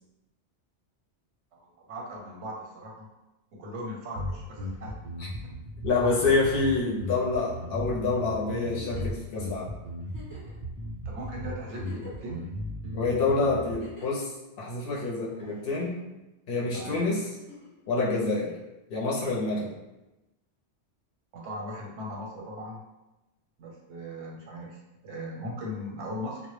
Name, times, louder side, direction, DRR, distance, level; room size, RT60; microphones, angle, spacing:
voice 1, 1.5-3.1 3.5-4.9 6.3-6.8 11.0-12.6 15.5-15.6 16.7-17.0 21.3-22.9 23.6-26.4, equal, 85° right, -1 dB, 0.9 m, -39 dB
sound 1, 4.2-13.8, left 1 dB, 60° right, 0.6 m, -36 dB
voice 2, 5.8-9.7 12.9-14.3 14.6-15.9 16.5-17.2 17.9-18.6 18.9-19.7, left 3 dB, 65° left, -4 dB, 0.7 m, -27 dB
Giggle, 8.6-9.2 10.1-10.6 11.2-11.3 11.6-12.4 13.6-14.2 15.4-16.0 17.3-17.8 19.3-19.4, equal, 20° left, 0.8 m, -48 dB
2.1 x 2.0 x 3.0 m, 1.0 s
omnidirectional pair, 1.2 m